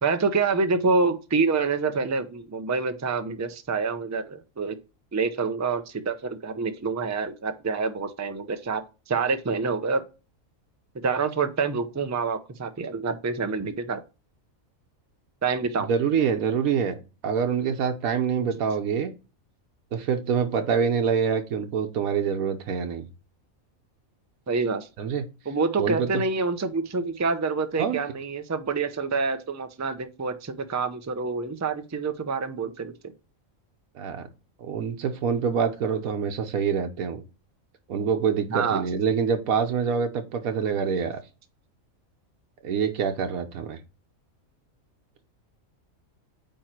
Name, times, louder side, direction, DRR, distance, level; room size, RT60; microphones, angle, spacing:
voice 1, 0.0-4.8 5.1-10.0 11.0-14.0 15.4-15.9 18.4-18.5 24.5-24.9 25.5-32.9 38.5-38.8, right 4 dB, 25° right, 9 dB, 0.3 m, -27 dB
voice 2, 15.9-19.1 19.9-23.1 25.0-25.2 25.8-26.2 27.8-28.0 33.9-34.3 34.6-37.2 37.9-41.2 42.6-43.8, right 6 dB, 90° right, 5 dB, 1.3 m, -26 dB
8.9 x 3.1 x 4.4 m, 0.31 s
omnidirectional pair, 1.4 m